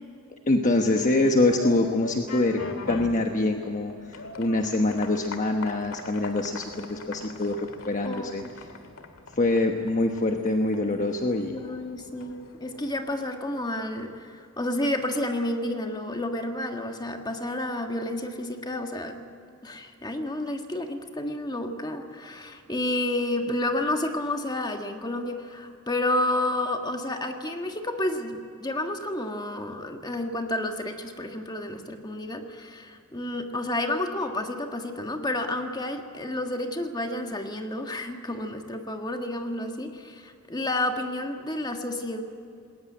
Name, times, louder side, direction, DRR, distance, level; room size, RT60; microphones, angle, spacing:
voice 1, 0.5-2.6 2.9-8.4 9.3-11.6, left 2 dB, 35° left, 3 dB, 1.2 m, -25 dB
sound 1, 0.9-13.7, left 3 dB, 75° left, 1.9 m, -41 dB
voice 2, 8.0-8.5 11.5-19.2 19.6-42.2, left 1 dB, 20° left, 4 dB, 1.6 m, -30 dB
20.0 x 19.0 x 9.2 m, 2.4 s
head